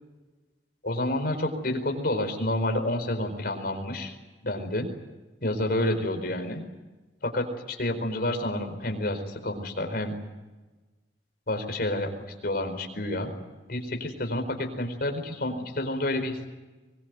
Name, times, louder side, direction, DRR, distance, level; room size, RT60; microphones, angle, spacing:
voice 1, 0.8-4.1 4.4-4.9 5.4-6.6 7.2-10.2 11.5-12.1 12.4-13.3 13.7-16.5, left 1 dB, 60° left, 5 dB, 4.5 m, -29 dB
24.0 x 21.0 x 9.5 m, 1.2 s
head